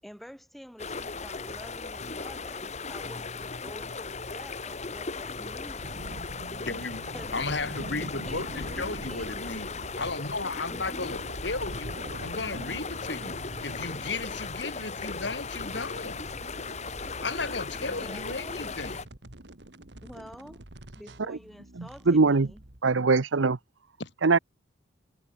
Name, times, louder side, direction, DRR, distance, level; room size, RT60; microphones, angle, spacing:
voice 1, 0.0-6.1 7.1-7.3 8.2-9.6 10.7-11.1 17.9-18.7 20.0-20.6 20.9-22.6, equal, ahead, 6.3 m, -48 dB
sound 1, 0.8-19.0, left 4 dB, 35° left, 1.6 m, -37 dB
sound 2, 5.8-22.8, right 1 dB, 60° right, 2.4 m, -45 dB
voice 2, 6.6-9.7 10.0-16.2 17.2-19.0 24.0-24.1, left 3 dB, 65° left, 4.2 m, -35 dB
voice 3, 21.8-22.5 22.8-23.6 24.2-24.4, right 4 dB, 85° right, 0.8 m, -22 dB
head